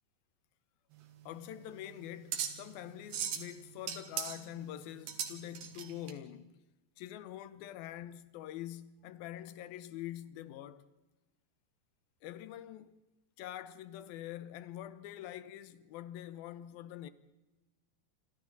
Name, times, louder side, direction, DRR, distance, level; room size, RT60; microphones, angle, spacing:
sound 1, 0.9-6.1, right 8 dB, 75° right, 4.3 m, -40 dB
voice 1, 1.3-6.6 7.0-10.9 12.2-13.0 13.4-17.1, left 12 dB, 70° left, 2.4 m, -45 dB
28.5 x 26.5 x 4.1 m
omnidirectional pair, 5.3 m